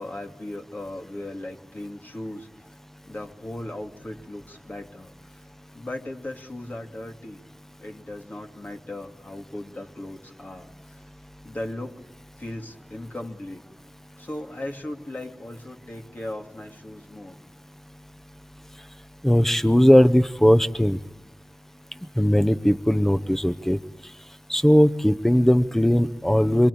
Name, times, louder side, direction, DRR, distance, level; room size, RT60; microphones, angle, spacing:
voice 1, 0.0-2.5 3.0-5.4 5.7-7.4 7.8-11.0 11.4-12.0 12.4-13.6 14.2-17.4, left 1 dB, 45° left, 3 dB, 3.0 m, -37 dB
voice 2, 19.2-21.0 22.2-23.8 24.5-26.7, equal, 10° left, 13 dB, 1.0 m, -18 dB
27.5 x 24.5 x 8.8 m, 0.97 s
cardioid pair, 45°, 4 cm